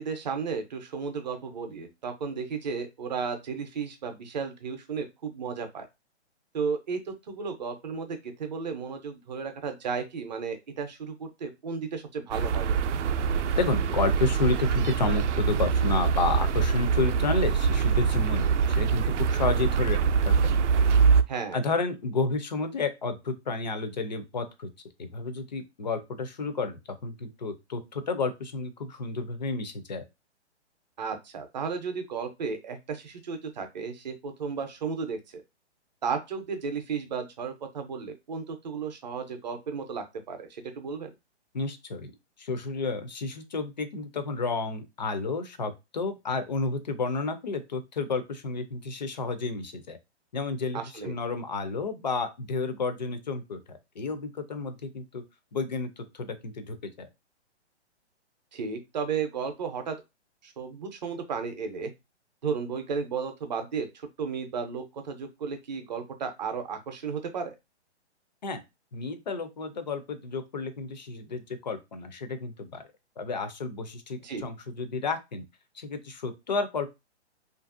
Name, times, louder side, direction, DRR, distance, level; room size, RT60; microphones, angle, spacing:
voice 1, 0.0-5.8 6.5-12.8 21.3-21.6 31.0-35.4 36.0-41.1 50.7-51.2 58.5-60.0 60.4-61.9 62.4-67.5 74.2-74.5, right 5 dB, 40° right, 6 dB, 0.6 m, -34 dB
sound 1, 12.3-21.2, right 6 dB, 90° right, 0.5 m, -24 dB
voice 2, 13.6-20.0 20.2-20.5 21.5-24.7 25.0-30.0 41.5-42.1 42.4-50.0 50.3-55.2 55.5-57.1 68.4-68.6 68.9-72.8 73.2-75.4 75.8-76.9, left 3 dB, 40° left, 9 dB, 0.4 m, -31 dB
2.8 x 2.5 x 2.4 m, 0.23 s
hypercardioid pair, 170°, 34 cm